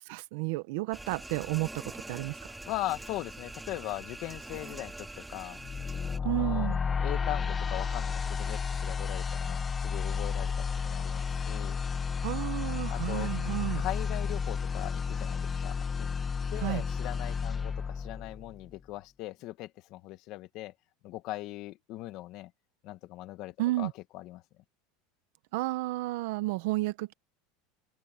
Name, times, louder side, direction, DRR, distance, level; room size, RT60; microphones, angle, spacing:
voice 1, 0.0-2.4 6.2-6.8 12.2-13.9 16.6-16.8 23.6-23.9 25.5-27.1, right 19 dB, 70° right, 0.9 m, -32 dB
sound 1, 0.9-6.2, right 2 dB, 5° right, 2.1 m, -44 dB
voice 2, 2.6-5.6 6.2-6.7 7.0-11.8 12.9-13.3 13.8-16.1 16.5-20.7 21.0-22.5 22.8-24.4, left 17 dB, 50° left, 1.6 m, -40 dB
sound 2, 5.6-18.7, left 6 dB, 20° left, 0.6 m, -32 dB
open air
supercardioid pair, 150°, 0 cm